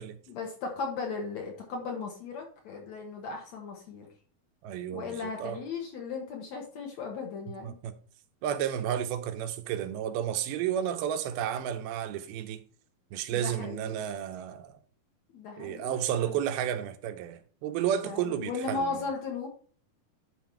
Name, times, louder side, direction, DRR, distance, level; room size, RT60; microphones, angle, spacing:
voice 1, 0.3-4.1 4.9-7.8 13.3-14.0 15.3-16.4 18.0-19.5, left 4 dB, 60° left, 2.1 m, -36 dB
voice 2, 4.6-5.6 7.6-7.9 8.4-12.6 13.1-14.8 15.6-18.9, right 10 dB, 90° right, 2.6 m, -32 dB
11.5 x 4.1 x 4.5 m
omnidirectional pair, 4.4 m